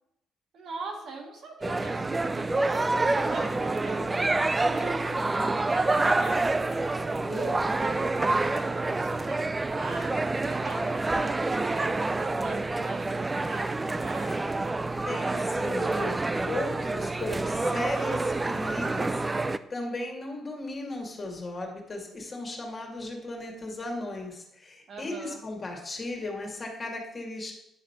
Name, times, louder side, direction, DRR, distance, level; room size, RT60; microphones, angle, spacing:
voice 1, 0.5-2.8 3.1-6.8 7.3-14.4 24.9-25.4, right 3 dB, 65° right, 1 dB, 2.1 m, -42 dB
sound 1, 1.6-19.6, right 2 dB, 20° right, 0.4 m, -27 dB
voice 2, 15.1-16.2 16.5-27.5, left 2 dB, 35° left, 1 dB, 2.3 m, -36 dB
10.5 x 3.9 x 5.8 m, 0.83 s
cardioid pair, 90°, 0 cm